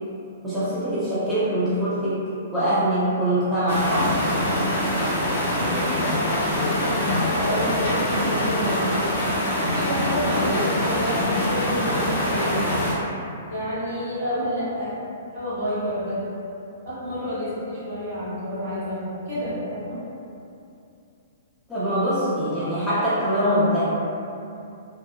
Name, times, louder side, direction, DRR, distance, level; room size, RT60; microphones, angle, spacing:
voice 1, 0.4-2.2 2.5-4.2 21.7-23.8, equal, ahead, -14 dB, 0.4 m, -23 dB
sound 1, 3.7-12.9, left 1 dB, 60° left, 0.7 m, -24 dB
voice 2, 5.5-5.8 6.1-6.4 6.9-8.9 9.7-12.7 13.5-15.0 15.3-16.2 16.8-20.0, equal, 55° right, -11 dB, 1.4 m, -29 dB
2.6 x 2.1 x 2.4 m, 2.7 s
hypercardioid pair, 165°, 0 cm